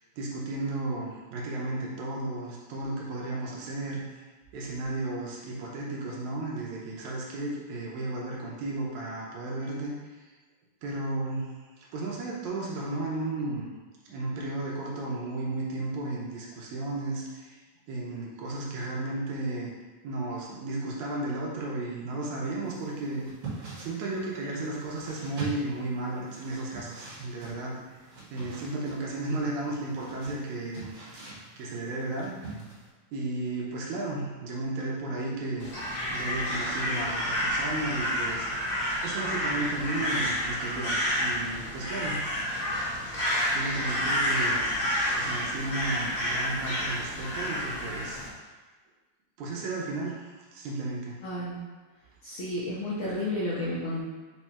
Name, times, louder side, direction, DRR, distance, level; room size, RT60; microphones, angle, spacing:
voice 1, 0.2-4.1 4.5-10.0 10.8-11.5 11.8-13.7 14.1-17.6 17.9-19.7 20.0-23.3 23.8-27.8 28.3-30.9 31.6-32.4 33.1-35.7 36.1-38.5 39.0-42.2 43.0-43.1 43.5-44.7 45.1-48.2 49.4-51.2, right 2 dB, 80° right, -3 dB, 2.2 m, -34 dB
sound 1, 22.6-32.9, right 3 dB, 55° right, 1.7 m, -44 dB
Crow, 35.6-48.3, equal, 50° left, 1.2 m, -29 dB
voice 2, 51.2-51.6 52.2-54.0, left 1 dB, 70° left, -9 dB, 1.3 m, -31 dB
5.3 x 2.3 x 4.2 m, 1.3 s
omnidirectional pair, 3.4 m